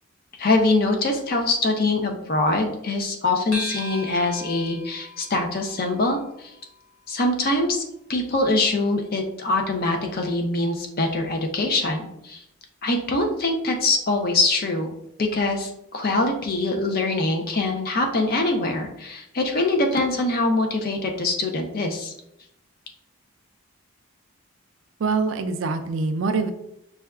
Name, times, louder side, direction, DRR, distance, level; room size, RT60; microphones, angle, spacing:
voice 1, 0.4-6.5 7.1-7.8 8.1-12.4 12.8-14.9 15.2-22.1, left 2 dB, 45° left, 3 dB, 0.5 m, -23 dB
sound 1, 3.5-8.3, equal, 85° left, 0.9 m, -39 dB
voice 2, 25.0-26.5, right 4 dB, 60° right, 8 dB, 0.3 m, -24 dB
5.4 x 2.2 x 2.3 m, 0.80 s
head